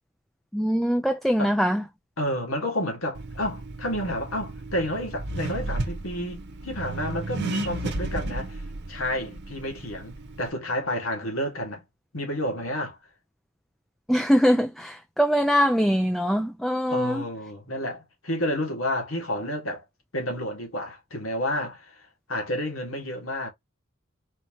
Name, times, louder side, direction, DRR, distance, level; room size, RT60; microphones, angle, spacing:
voice 1, 0.5-1.8 14.1-17.2, equal, ahead, 0.3 m, -22 dB
voice 2, 2.2-8.6 8.9-11.8 12.1-13.0 16.9-19.8 20.1-23.5, left 1 dB, 80° left, 1.8 m, -30 dB
Accelerating revving vroom, 3.2-10.5, right 2 dB, 55° right, 0.8 m, -33 dB
4.4 x 2.7 x 2.9 m
head